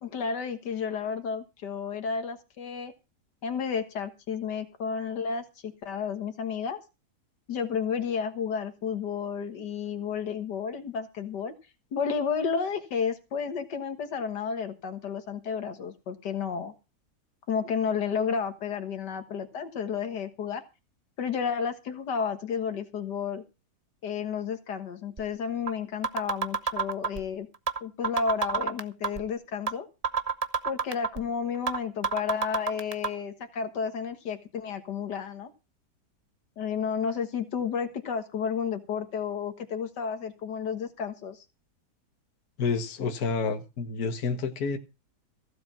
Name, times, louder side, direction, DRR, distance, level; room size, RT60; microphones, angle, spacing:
voice 1, 0.0-2.9 3.4-6.8 7.5-11.5 11.9-16.7 17.5-20.6 21.2-23.4 24.0-27.5 27.8-29.9 30.7-35.5 36.6-41.4, left 6 dB, 90° left, 2.1 m, -32 dB
sound 1, 25.2-25.3 25.7-25.8 26.0-27.2 27.7-27.8 28.0-29.2 29.7-29.8 30.0-31.2 31.7-31.8 32.0-33.1, right 5 dB, 35° right, 0.7 m, -27 dB
voice 2, 42.6-44.8, left 4 dB, 65° left, 1.9 m, -29 dB
15.5 x 7.7 x 5.9 m
omnidirectional pair, 1.8 m